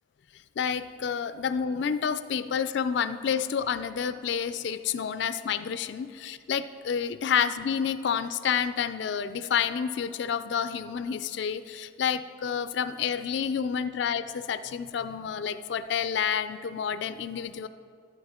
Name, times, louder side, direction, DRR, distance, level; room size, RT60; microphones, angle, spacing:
voice 1, 0.6-17.7, left 7 dB, 60° left, 12 dB, 0.3 m, -29 dB
13.5 x 9.8 x 3.6 m, 2.3 s
head